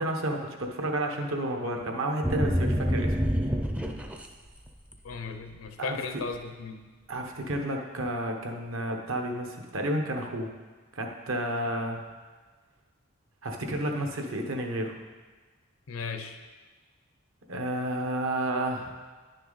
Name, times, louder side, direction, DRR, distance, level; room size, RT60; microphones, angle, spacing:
voice 1, 0.0-3.2 5.8-6.2 7.1-10.5 10.9-12.0 13.4-15.0 17.5-19.0, right 1 dB, 70° right, 3 dB, 1.1 m, -31 dB
sound 1, 2.2-4.3 4.7-5.1, equal, 5° right, 0.4 m, -27 dB
voice 2, 5.0-6.8 15.9-16.4, left 4 dB, 85° left, 6 dB, 0.7 m, -36 dB
10.0 x 6.6 x 4.0 m, 1.4 s
head